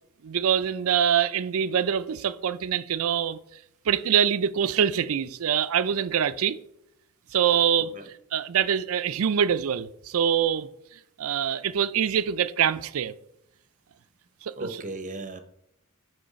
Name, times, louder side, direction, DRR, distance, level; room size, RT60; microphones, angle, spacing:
voice 1, 0.2-3.4 3.9-6.6 7.3-7.9 8.3-10.7 11.2-13.1 14.4-14.7, right 8 dB, 70° right, 0.4 m, -24 dB
voice 2, 14.6-15.4, right 2 dB, 35° right, 0.9 m, -36 dB
7.8 x 3.8 x 5.1 m
head